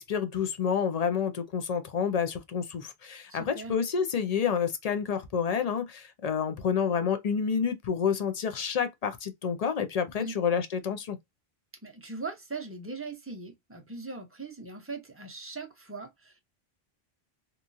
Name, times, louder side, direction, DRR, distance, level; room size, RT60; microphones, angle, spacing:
voice 1, 0.0-11.2, left 7 dB, 50° left, 0.5 m, -29 dB
voice 2, 3.3-3.8 10.2-10.4 11.8-16.4, right 3 dB, 15° right, 0.5 m, -40 dB
3.0 x 2.3 x 2.5 m
omnidirectional pair, 1.1 m